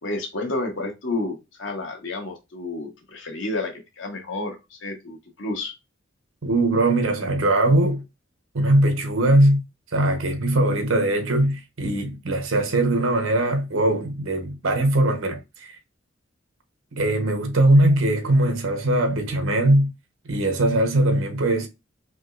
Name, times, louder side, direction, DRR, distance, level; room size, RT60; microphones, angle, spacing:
voice 1, 0.0-5.7, left 2 dB, 65° left, 1.1 m, -30 dB
voice 2, 6.4-8.0 8.5-9.6 9.9-15.7 16.9-19.9 20.3-21.7, right 1 dB, 85° right, 0.9 m, -20 dB
3.4 x 2.9 x 2.4 m
head